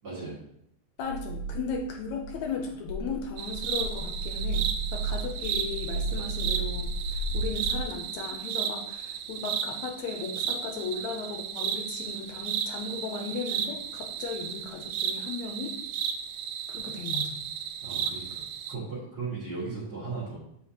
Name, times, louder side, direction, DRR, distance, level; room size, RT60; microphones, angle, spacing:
voice 1, 0.0-0.4 17.8-20.4, right 4 dB, 40° right, -7 dB, 1.9 m, -37 dB
voice 2, 1.0-15.7 16.7-17.4, left 5 dB, 75° left, 2 dB, 1.9 m, -36 dB
sound 1, 1.0-7.8, right 3 dB, 60° right, 2.1 m, -33 dB
sound 2, 3.4-18.8, right 8 dB, 90° right, 1.4 m, -34 dB
7.4 x 5.0 x 2.8 m, 0.74 s
omnidirectional pair, 3.4 m